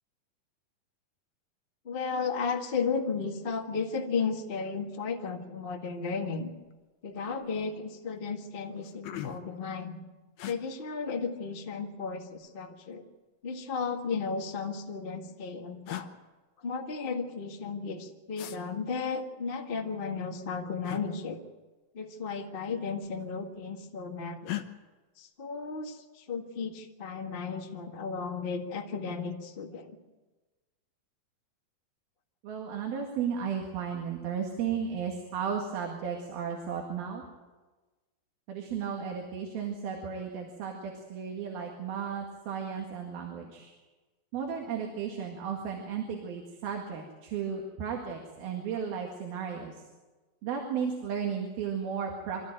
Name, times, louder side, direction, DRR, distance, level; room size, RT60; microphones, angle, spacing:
voice 1, 1.8-6.5 7.0-10.0 10.4-13.0 13.4-16.1 16.6-21.4 21.9-24.6 25.2-30.0, left 5 dB, 45° left, 2 dB, 0.7 m, -34 dB
sound 1, 6.6-6.9 7.3-7.7 8.3-8.4 8.7-9.6 10.4-10.6 11.8-12.5 13.6-14.5 15.4-15.5 15.9-16.1 18.4-18.6 20.8-21.1 22.4-22.7 23.0-23.6 24.4-24.7, left 13 dB, 85° left, 3.0 m, -40 dB
voice 2, 32.4-37.2 38.5-43.7 44.3-49.8 50.4-52.4, right 7 dB, 85° right, 1 dB, 3.9 m, -34 dB
25.5 x 13.5 x 9.0 m, 1.2 s
omnidirectional pair, 4.2 m